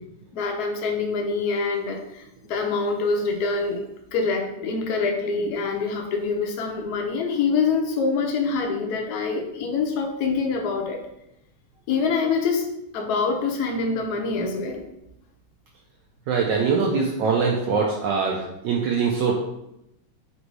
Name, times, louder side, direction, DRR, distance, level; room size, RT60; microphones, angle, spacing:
voice 1, 0.3-3.8 4.1-11.0 11.9-12.7 12.9-14.9, left 4 dB, 65° left, 2 dB, 1.0 m, -25 dB
voice 2, 16.3-19.3, right 5 dB, 75° right, -1 dB, 1.1 m, -23 dB
4.0 x 2.6 x 4.5 m, 0.83 s
omnidirectional pair, 2.3 m